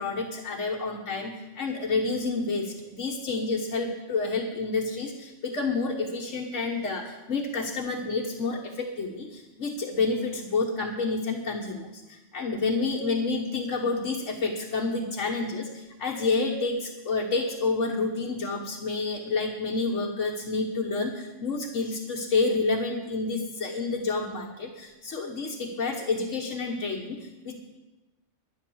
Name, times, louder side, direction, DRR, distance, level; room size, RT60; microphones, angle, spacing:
voice 1, 0.0-27.5, left 3 dB, 75° left, 0 dB, 1.5 m, -29 dB
11.0 x 11.0 x 7.1 m, 1.1 s
omnidirectional pair, 1.3 m